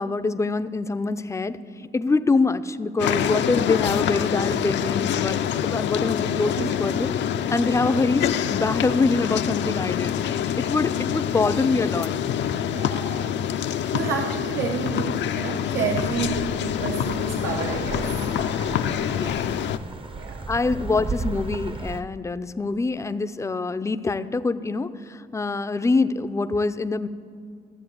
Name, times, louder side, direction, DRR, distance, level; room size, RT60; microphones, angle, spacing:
voice 1, 0.0-7.2 7.5-10.2 10.6-12.1 19.1-19.4 20.5-27.1, left 3 dB, 15° left, 12 dB, 0.5 m, -25 dB
sound 1, 3.0-19.8, left 9 dB, 65° left, 0.5 m, -26 dB
voice 2, 12.5-13.4 13.7-18.2 20.1-20.8, right 6 dB, 80° right, 3 dB, 1.0 m, -31 dB
sound 2, 15.7-22.0, right 3 dB, 25° right, 0.7 m, -35 dB
14.0 x 7.4 x 7.8 m, 2.3 s
cardioid pair, 90°, 20 cm